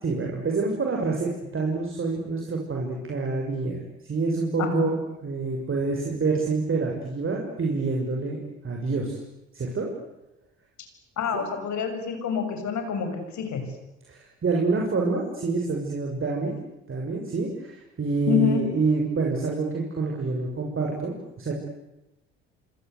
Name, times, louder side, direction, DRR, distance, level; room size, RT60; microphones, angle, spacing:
voice 1, 0.0-5.0 5.2-9.2 9.5-9.9 11.3-11.5 14.1-16.5 16.9-21.5, right 3 dB, 35° right, 0 dB, 6.5 m, -27 dB
voice 2, 4.6-4.9 11.2-13.6 18.3-18.7, left 7 dB, 55° left, 6 dB, 7.3 m, -27 dB
26.5 x 26.0 x 8.3 m, 0.93 s
hypercardioid pair, 60°, 35 cm